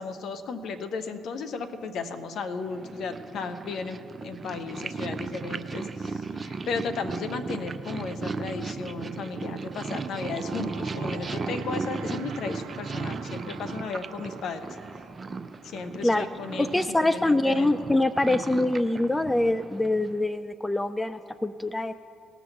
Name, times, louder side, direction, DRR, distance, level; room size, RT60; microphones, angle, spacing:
voice 1, 0.0-14.8 15.6-17.7, left 4 dB, 65° left, 9 dB, 0.9 m, -35 dB
Purr, 2.6-20.3, right 4 dB, 35° right, 0.6 m, -36 dB
sound 1, 7.7-18.3, right 7 dB, 75° right, 1.2 m, -48 dB
voice 2, 16.6-21.9, left 2 dB, 15° left, 12 dB, 0.4 m, -24 dB
18.5 x 6.1 x 7.0 m, 2.5 s
hypercardioid pair, 50°, 0 cm